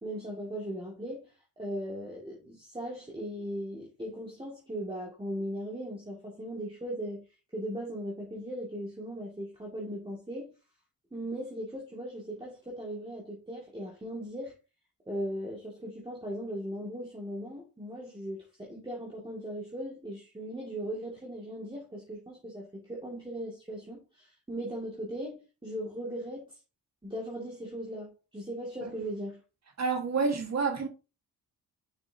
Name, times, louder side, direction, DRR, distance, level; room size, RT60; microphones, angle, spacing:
voice 1, 0.0-1.3 1.6-7.3 7.5-10.5 11.1-14.6 15.1-26.6 27.0-29.4, equal, 15° right, 2.3 m, -38 dB
voice 2, 29.8-30.9, right 4 dB, 45° right, 1.7 m, -28 dB
6.8 x 6.0 x 2.8 m
cardioid pair, 100°, 37 cm